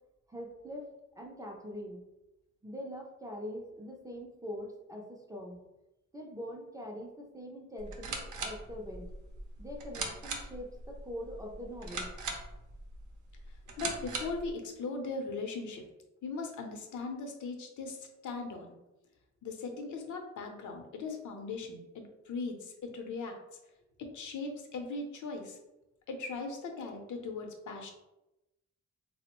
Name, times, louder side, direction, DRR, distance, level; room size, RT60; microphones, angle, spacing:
voice 1, 0.3-0.9 1.2-2.0 2.6-5.6 6.1-9.1 9.6-12.1, equal, 10° right, -1 dB, 0.3 m, -43 dB
sound 1, 7.8-14.5, right 3 dB, 90° right, 0.6 m, -40 dB
voice 2, 13.8-15.8 16.2-18.0 18.2-18.8 19.4-23.3 24.0-25.6 26.1-27.9, left 3 dB, 85° left, 3 dB, 0.6 m, -39 dB
3.5 x 2.0 x 2.9 m, 0.95 s
wide cardioid pair, 165°, 29 cm